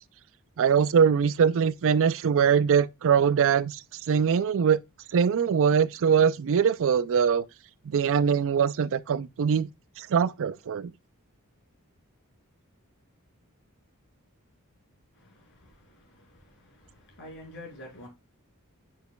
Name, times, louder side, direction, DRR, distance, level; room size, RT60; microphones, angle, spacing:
voice 1, 0.6-4.8 5.1-7.4 7.9-9.7 10.0-10.9, right 7 dB, 60° right, 0.4 m, -22 dB
voice 2, 15.1-18.1, left 1 dB, 55° left, 4.1 m, -48 dB
7.3 x 6.6 x 2.2 m
head